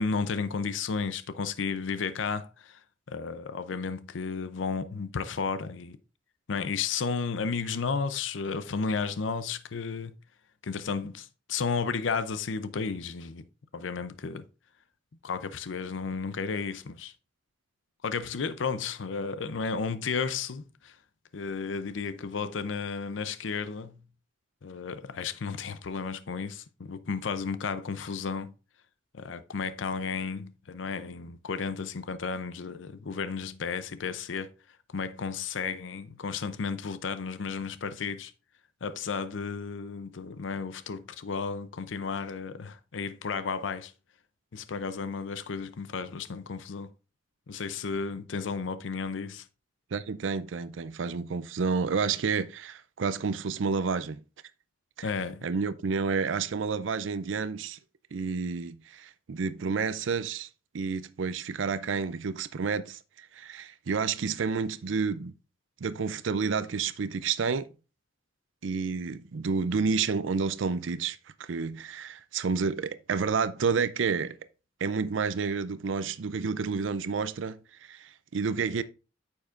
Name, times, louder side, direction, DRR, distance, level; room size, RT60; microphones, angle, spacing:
voice 1, 0.0-2.8 3.1-6.0 6.5-10.1 10.6-13.4 13.7-14.5 15.2-17.1 18.0-20.9 21.3-23.9 24.6-28.5 29.1-34.5 34.9-38.3 38.8-43.9 44.5-46.9 47.5-49.4 55.0-55.5, left 5 dB, 80° left, 0.6 m, -33 dB
voice 2, 49.9-54.2 55.0-55.1 55.4-57.8 58.1-60.5 60.7-65.3 65.8-67.7 68.6-74.4 74.8-78.8, right 5 dB, 85° right, 0.5 m, -30 dB
9.4 x 7.0 x 2.5 m
head